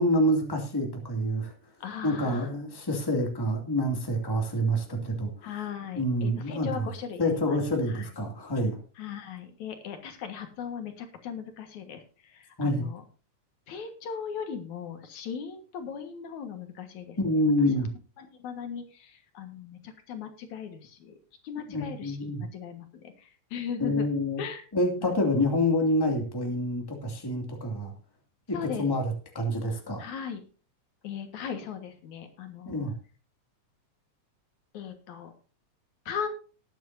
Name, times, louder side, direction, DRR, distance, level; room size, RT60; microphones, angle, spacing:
voice 1, 0.0-1.5 2.0-5.3 5.9-6.7 7.2-8.8 12.6-12.8 17.2-17.9 21.7-22.4 23.8-24.4 24.7-27.9 28.5-30.0 32.7-32.9, left 1 dB, 10° left, 2 dB, 2.2 m, -27 dB
voice 2, 1.8-2.6 5.4-7.6 7.9-8.1 9.0-13.0 13.7-17.4 17.8-17.9 18.2-21.1 21.4-24.1 24.4-24.6 25.0-25.2 28.5-29.0 30.0-30.4 31.0-32.9 34.7-35.3 36.1-36.3, left 7 dB, 75° left, 6 dB, 3.0 m, -38 dB
19.0 x 9.3 x 2.7 m, 0.35 s
omnidirectional pair, 3.4 m